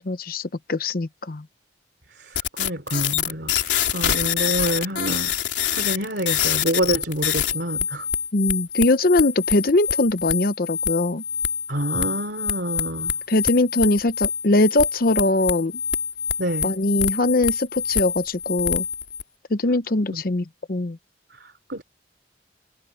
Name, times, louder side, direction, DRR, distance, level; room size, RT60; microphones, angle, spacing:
voice 1, 0.0-1.4 3.7-3.9 8.3-11.2 13.3-15.7 16.6-18.8 19.5-21.0, left 2 dB, 55° left, 0.8 m, -21 dB
voice 2, 2.1-5.4 5.7-8.1 11.7-13.1 16.4-16.7 20.1-20.2 21.4-21.8, right 1 dB, 65° right, 3.3 m, -27 dB
sound 1, 2.3-19.2, left 8 dB, 80° left, 3.3 m, -26 dB
head